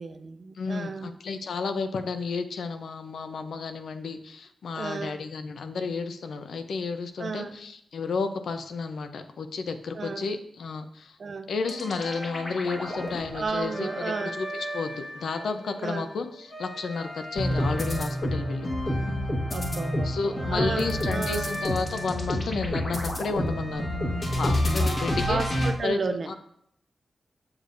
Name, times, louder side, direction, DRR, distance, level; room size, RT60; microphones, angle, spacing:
voice 1, 0.0-1.1 4.7-5.2 7.2-7.6 9.9-10.3 11.2-11.5 13.3-14.4 15.8-16.1 19.5-21.5 24.8-26.3, right 4 dB, 55° right, 9 dB, 0.5 m, -33 dB
voice 2, 0.6-11.2 11.5-14.5 14.7-18.7 20.0-23.9 24.4-25.4 25.8-26.0 26.3-26.4, left 4 dB, 90° left, 8 dB, 0.6 m, -32 dB
sound 1, 11.6-15.7 16.2-25.7, left 1 dB, 45° left, 1.3 m, -29 dB
7.2 x 6.6 x 2.5 m, 0.70 s
wide cardioid pair, 95°, 0 cm